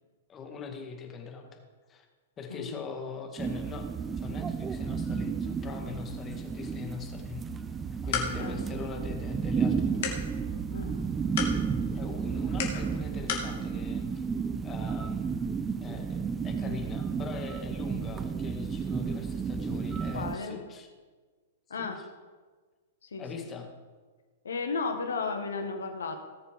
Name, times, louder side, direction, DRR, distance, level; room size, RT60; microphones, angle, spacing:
voice 1, 0.3-2.1 2.4-3.9 4.2-7.5 8.0-10.3 11.9-14.3 14.6-20.9 21.8-22.1 23.2-23.7, left 5 dB, 25° left, 3 dB, 2.1 m, -42 dB
sound 1, 3.4-20.4, right 6 dB, 20° right, 0.6 m, -32 dB
sound 2, 7.7-13.5, left 6 dB, 55° left, 2.6 m, -38 dB
voice 2, 10.7-11.0 20.1-20.6 21.7-22.0 23.1-23.5 24.4-26.2, left 4 dB, 75° left, 5 dB, 1.8 m, -34 dB
18.5 x 6.9 x 4.8 m, 1.4 s
figure-of-eight pair, 105°, 0 cm